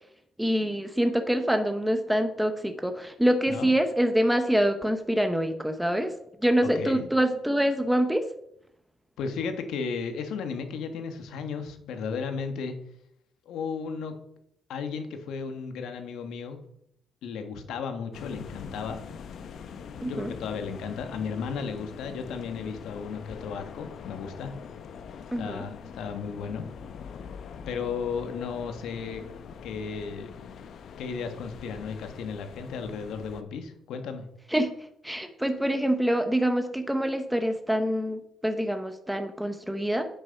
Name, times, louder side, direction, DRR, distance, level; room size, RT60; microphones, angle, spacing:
voice 1, 0.4-6.1 6.4-8.3 20.0-20.3 25.3-25.7 34.5-34.7 35.0-40.1, equal, 5° right, 7 dB, 0.9 m, -25 dB
voice 2, 6.7-7.1 9.2-12.7 13.5-14.1 14.7-16.6 17.2-19.0 20.0-24.5 25.4-26.6 27.7-29.2 29.6-30.3 31.0-34.3, left 5 dB, 85° left, 7 dB, 1.4 m, -34 dB
sound 1, 18.1-33.4, left 6 dB, 65° left, 0.8 m, -43 dB
8.9 x 6.7 x 5.8 m, 0.72 s
cardioid pair, 90°, 0 cm